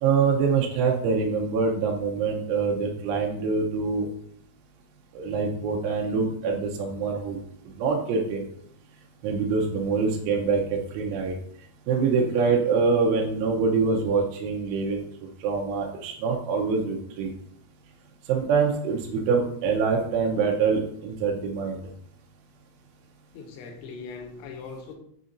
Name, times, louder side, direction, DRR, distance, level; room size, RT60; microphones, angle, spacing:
voice 1, 0.0-4.1 5.1-7.4 7.8-8.4 9.2-11.4 11.9-15.0 15.4-17.3 18.3-21.8, right 5 dB, 85° right, -1 dB, 3.1 m, -25 dB
voice 2, 23.3-24.9, left 4 dB, 85° left, 4 dB, 2.9 m, -40 dB
9.5 x 4.1 x 2.5 m, 0.71 s
omnidirectional pair, 5.5 m